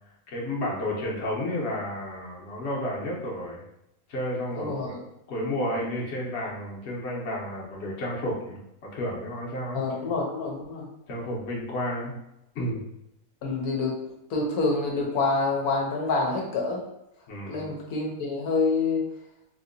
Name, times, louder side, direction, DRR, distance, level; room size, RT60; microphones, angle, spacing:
voice 1, 0.3-3.6 4.1-5.0 5.3-8.6 8.9-10.1 11.1-12.2 12.5-12.8 17.3-17.7, left 1 dB, 55° left, -3 dB, 1.0 m, -31 dB
voice 2, 4.6-5.0 9.7-10.9 13.4-14.0 14.3-16.8 17.5-19.1, left 3 dB, 80° left, -1 dB, 1.2 m, -27 dB
3.5 x 2.7 x 2.6 m, 0.84 s
omnidirectional pair, 1.5 m